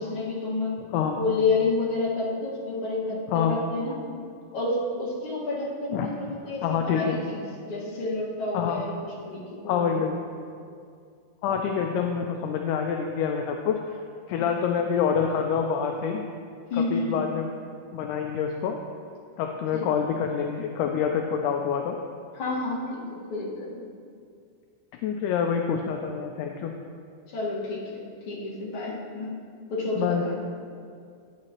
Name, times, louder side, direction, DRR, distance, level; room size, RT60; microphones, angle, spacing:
voice 1, 0.0-0.7 1.1-3.9 4.5-9.9 14.4-14.5 16.7-17.2 19.7-19.8 22.3-23.5 27.3-29.3 29.7-30.5, left 3 dB, 45° left, -6 dB, 2.2 m, -29 dB
voice 2, 6.6-7.2 8.5-8.8 9.7-10.1 11.4-14.0 14.3-16.2 16.9-17.5 17.9-18.8 19.4-22.0 25.0-26.7 30.0-30.2, left 7 dB, 80° left, 3 dB, 1.9 m, -26 dB
10.5 x 8.1 x 2.9 m, 2.3 s
omnidirectional pair, 3.7 m